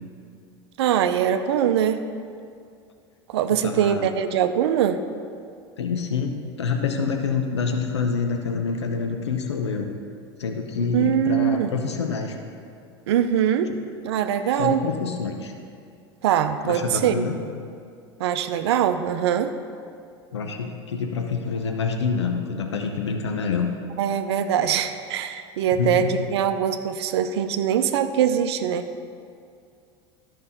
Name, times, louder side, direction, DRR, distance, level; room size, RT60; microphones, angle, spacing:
voice 1, 0.8-2.0 3.3-5.0 10.9-11.7 13.1-13.7 14.0-14.8 16.2-17.2 18.2-19.5 24.0-28.9, right 9 dB, 75° right, 9 dB, 0.6 m, -22 dB
voice 2, 3.5-4.1 5.8-9.9 10.4-12.4 14.6-15.5 16.6-17.4 20.3-23.7 25.8-26.1, left 5 dB, 90° left, 4 dB, 0.7 m, -27 dB
11.5 x 5.5 x 5.5 m, 2.3 s
hypercardioid pair, 85°, 14 cm